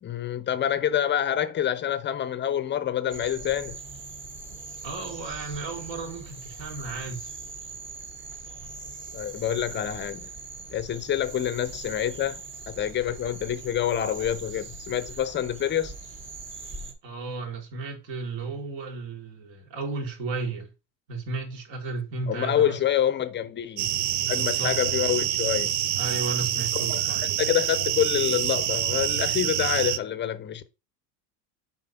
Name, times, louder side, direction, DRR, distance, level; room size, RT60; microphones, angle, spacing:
voice 1, 0.0-3.8 9.1-10.3 10.7-15.9 22.3-24.0 24.3-25.7 26.7-27.0 27.4-30.7, left 10 dB, 20° left, 0.6 m, -27 dB
sound 1, 3.1-16.9, right 3 dB, 25° right, 1.4 m, -41 dB
voice 2, 4.8-7.3 17.0-20.7 21.1-22.8 24.3-24.8 26.0-27.4, right 3 dB, 60° right, 3.9 m, -34 dB
sound 2, 23.8-30.0, right 11 dB, 90° right, 0.9 m, -26 dB
7.5 x 4.2 x 5.9 m
supercardioid pair, 140°, 50 cm